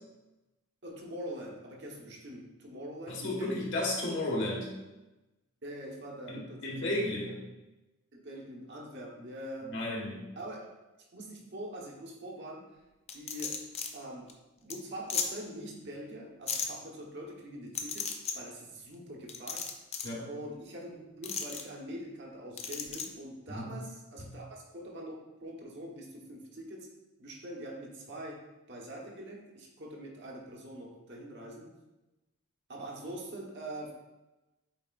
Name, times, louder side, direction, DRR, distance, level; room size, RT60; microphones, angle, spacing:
voice 1, 0.8-3.7 5.6-6.9 8.1-9.7 10.3-10.7 11.1-12.6 13.1-13.6 13.9-14.3 14.6-19.6 20.3-26.9 27.2-28.4 28.7-31.7 32.7-33.9, right 1 dB, 55° right, -2 dB, 1.3 m, -43 dB
voice 2, 3.1-4.7 6.3-7.4 9.6-10.3 20.0-20.3 23.5-23.7 24.2-24.3, left 1 dB, 55° left, -4 dB, 1.8 m, -33 dB
sound 1, 13.1-13.9 14.3-14.4 14.7-14.8 15.1-15.3 16.5-16.7 17.7-18.3 19.3-20.1 21.2-21.6 22.6-23.1, left 6 dB, 30° left, 0.5 m, -34 dB
8.6 x 4.4 x 2.5 m, 1.0 s
head